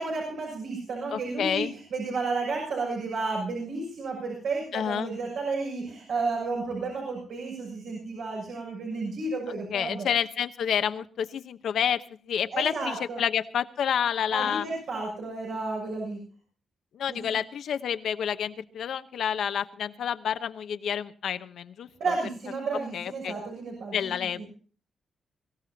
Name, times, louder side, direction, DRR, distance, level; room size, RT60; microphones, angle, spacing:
voice 1, 0.0-10.1 12.5-13.2 14.3-16.2 17.1-17.3 22.0-24.5, right 3 dB, 80° right, -2 dB, 6.6 m, -32 dB
voice 2, 1.1-1.7 4.7-5.1 9.7-14.6 16.9-21.9 22.9-23.3 23.9-24.4, left 8 dB, 75° left, 10 dB, 0.9 m, -29 dB
23.5 x 15.5 x 2.8 m, 0.39 s
wide cardioid pair, 165°, 0 cm